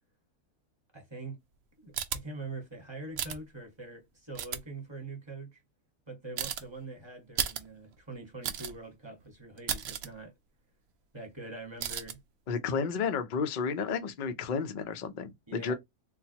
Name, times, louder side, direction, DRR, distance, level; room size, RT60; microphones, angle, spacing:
voice 1, 0.9-1.4 1.8-5.6 6.1-10.3 11.1-12.2 12.8-13.0 15.5-15.7, right 3 dB, 20° right, 1.2 m, -44 dB
sound 1, 1.9-2.2 3.2-3.4 4.3-4.6 6.4-6.6 7.4-7.7 7.9-8.0 8.4-8.8 9.2-9.3 9.6-10.1 11.8-12.1, right 8 dB, 70° right, 0.6 m, -33 dB
voice 2, 12.5-15.7, left 5 dB, 60° left, 0.5 m, -32 dB
3.8 x 2.2 x 2.8 m
omnidirectional pair, 1.6 m